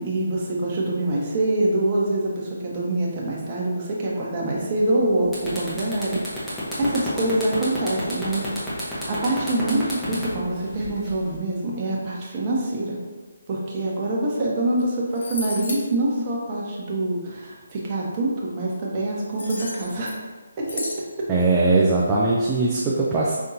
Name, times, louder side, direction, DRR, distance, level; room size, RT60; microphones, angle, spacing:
voice 1, 0.0-13.0 13.5-20.2 20.6-20.9 21.2-21.3, right 1 dB, 30° right, -4 dB, 1.1 m, -25 dB
sound 1, 4.8-5.0 5.3-11.4, equal, 5° left, 1.2 m, -31 dB
sound 2, 14.8-14.9 15.1-15.8 19.3-20.2 20.7-21.0, left 2 dB, 55° left, 1.1 m, -33 dB
voice 2, 21.3-23.3, right 3 dB, 15° right, -6 dB, 0.5 m, -20 dB
5.5 x 3.5 x 2.8 m, 1.3 s
figure-of-eight pair, 150°, 0 cm